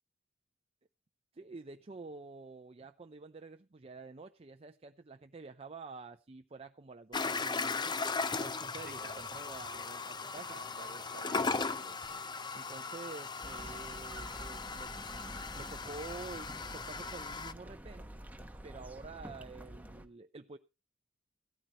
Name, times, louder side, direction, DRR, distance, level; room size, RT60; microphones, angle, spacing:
voice 1, 1.3-8.0 8.4-10.6 12.5-14.9 15.5-18.2 18.6-20.6, right 3 dB, 30° right, 0.6 m, -48 dB
sound 1, 7.1-17.5, left 4 dB, 20° left, 0.6 m, -38 dB
voice 2, 8.7-9.5 10.4-12.3, right 4 dB, 45° right, 1.3 m, -52 dB
sound 2, 10.9-17.0, left 2 dB, 80° left, 6.8 m, -68 dB
sound 3, 13.4-20.1, right 1 dB, 10° right, 1.1 m, -48 dB
15.5 x 13.0 x 3.0 m
head